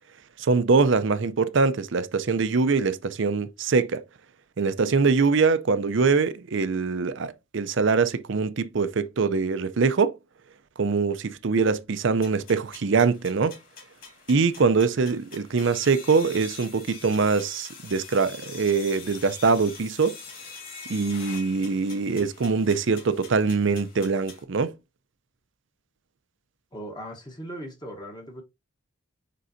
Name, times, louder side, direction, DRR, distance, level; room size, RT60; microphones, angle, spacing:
voice 1, 0.4-4.0 4.6-10.1 10.8-13.6 14.3-20.2 20.9-24.7, right 4 dB, 55° right, 0.5 m, -23 dB
sound 1, 12.2-24.4, left 5 dB, 45° left, 3.7 m, -44 dB
voice 2, 26.7-28.4, equal, 20° left, 1.1 m, -38 dB
9.3 x 3.8 x 2.6 m
head